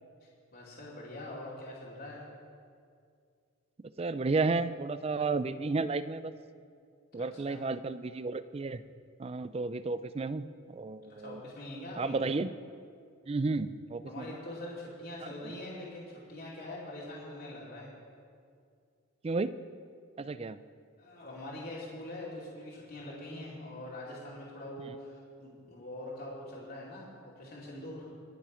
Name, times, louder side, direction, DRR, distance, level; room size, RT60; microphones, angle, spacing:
voice 1, 0.5-2.2 7.1-7.6 11.2-12.2 14.1-17.9 21.0-28.1, left 1 dB, 45° left, -6 dB, 2.5 m, -43 dB
voice 2, 4.0-6.3 7.1-8.8 9.2-11.4 12.0-12.5 13.3-14.4 15.2-15.3 19.2-19.5 20.2-20.6, right 3 dB, 30° right, 14 dB, 0.3 m, -32 dB
22.0 x 7.5 x 5.1 m, 2.2 s
head